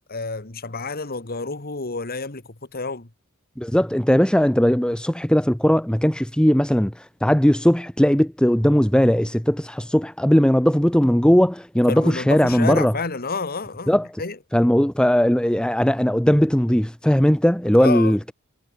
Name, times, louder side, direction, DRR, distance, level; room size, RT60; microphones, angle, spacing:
voice 1, 0.1-2.4 2.7-3.1 11.9-14.4 17.8-18.2, left 3 dB, 45° left, 1.9 m, -29 dB
voice 2, 3.6-12.9 13.9-14.1 14.5-18.3, equal, 5° left, 0.8 m, -18 dB
head